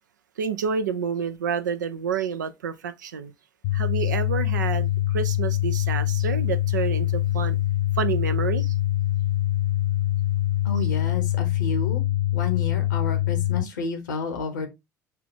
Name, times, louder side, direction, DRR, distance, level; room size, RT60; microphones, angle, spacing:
voice 1, 0.4-3.3 3.7-7.6 8.0-8.7, right 7 dB, 75° right, 0.5 m, -29 dB
sound 1, 3.6-13.6, left 14 dB, 60° left, 0.4 m, -24 dB
voice 2, 10.6-12.0 12.3-14.7, left 4 dB, 75° left, 1.1 m, -30 dB
5.7 x 2.4 x 3.7 m
figure-of-eight pair, 60°, 10 cm